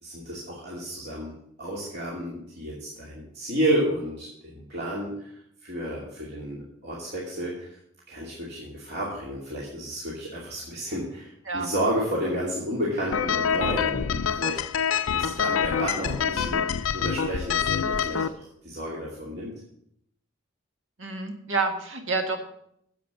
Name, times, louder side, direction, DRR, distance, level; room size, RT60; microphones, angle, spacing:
voice 1, 0.0-1.3 1.6-4.3 4.5-5.3 5.6-7.8 8.1-14.6 15.1-19.5, right 1 dB, 50° right, -6 dB, 2.7 m, -31 dB
sound 1, 13.1-18.3, left 7 dB, 80° left, 0.5 m, -26 dB
voice 2, 21.0-22.4, right 3 dB, 70° right, 5 dB, 1.6 m, -28 dB
10.0 x 7.8 x 6.8 m, 0.71 s
head